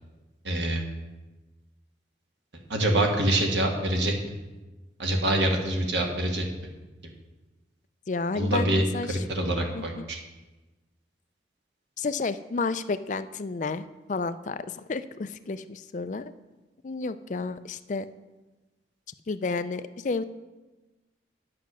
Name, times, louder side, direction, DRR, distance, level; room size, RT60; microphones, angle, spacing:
voice 1, 0.4-0.8 2.7-4.1 5.0-6.5 8.3-8.8 9.1-10.2, right 1 dB, 75° right, 2 dB, 1.6 m, -25 dB
voice 2, 8.1-9.2 9.7-10.0 12.0-16.3 16.8-18.1 19.3-20.2, left 4 dB, 40° left, 12 dB, 0.4 m, -31 dB
9.5 x 6.7 x 6.1 m, 1.1 s
head